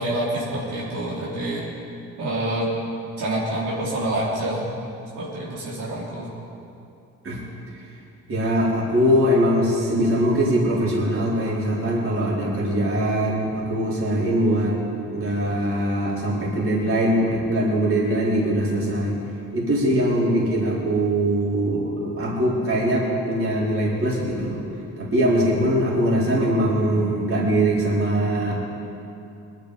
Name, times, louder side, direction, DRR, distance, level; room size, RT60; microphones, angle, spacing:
voice 1, 0.0-1.7 2.2-2.7 3.2-4.7 5.1-6.3, right 1 dB, 80° right, -7 dB, 4.0 m, -27 dB
voice 2, 8.3-14.8 15.1-19.2 19.5-24.6 25.0-28.5, right 1 dB, 45° right, -6 dB, 4.7 m, -22 dB
20.0 x 11.5 x 5.2 m, 2.7 s
cardioid pair, 90°, 30 cm